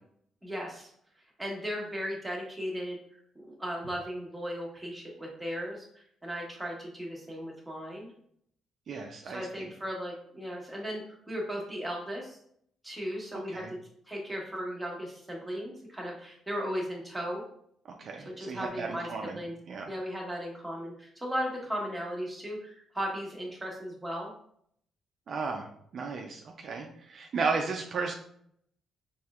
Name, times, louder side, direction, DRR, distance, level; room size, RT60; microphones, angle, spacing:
voice 1, 0.4-0.9 1.4-3.0 3.3-5.8 6.2-8.1 9.2-12.4 12.8-13.6 14.1-17.4 18.2-19.1 19.3-19.5 19.9-24.3, equal, 10° right, -2 dB, 1.2 m, -36 dB
voice 2, 8.9-9.7 13.3-13.7 17.9-19.4 19.7-19.9 25.3-25.7 25.9-28.1, right 4 dB, 55° right, 2 dB, 0.5 m, -34 dB
4.2 x 3.1 x 2.4 m, 0.67 s
cardioid pair, 90°, 0 cm